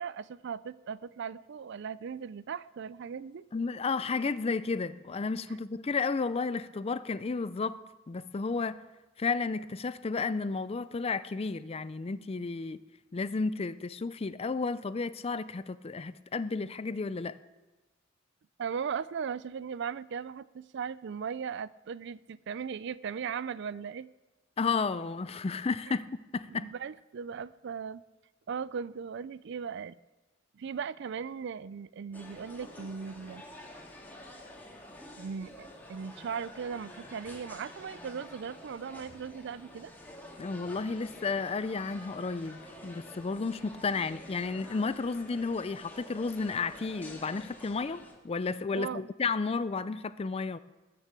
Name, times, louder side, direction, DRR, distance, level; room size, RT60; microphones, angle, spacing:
voice 1, 0.0-3.5 16.6-16.7 18.6-24.1 26.5-28.0 28.5-30.0 30.5-33.4 35.2-39.9 48.7-49.1, right 6 dB, 60° right, 0.4 m, -38 dB
voice 2, 3.5-7.8 8.1-8.8 9.2-12.8 13.1-17.4 24.6-26.7 40.4-50.6, left 4 dB, 30° left, 0.4 m, -32 dB
sound 1, 32.1-48.1, left 1 dB, 10° left, 2.2 m, -49 dB
20.0 x 6.7 x 7.4 m
head